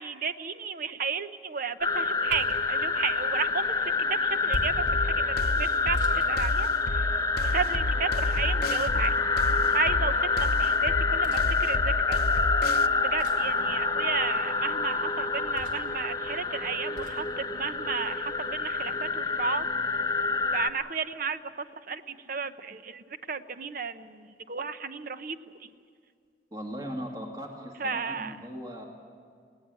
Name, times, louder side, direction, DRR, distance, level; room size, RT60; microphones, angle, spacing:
voice 1, 0.0-3.9 4.2-6.7 6.9-7.1 7.4-9.1 9.7-12.2 12.9-19.7 20.5-21.4 21.9-25.7 27.8-28.3, right 5 dB, 50° right, 11 dB, 0.8 m, -33 dB
sound 1, 1.8-20.7, left 4 dB, 20° left, 0.8 m, -27 dB
sound 2, 2.2-2.7 4.5-4.9 5.9-7.1 8.8-9.4 11.2-11.5 13.2-13.5 15.6-16.0 17.0-17.2, left 1 dB, 70° right, 3.8 m, -40 dB
sound 3, 4.9-12.9, left 2 dB, 55° left, 0.7 m, -31 dB
voice 2, 26.5-28.9, equal, 20° right, 1 dB, 2.1 m, -38 dB
21.0 x 18.0 x 9.0 m, 2.2 s
head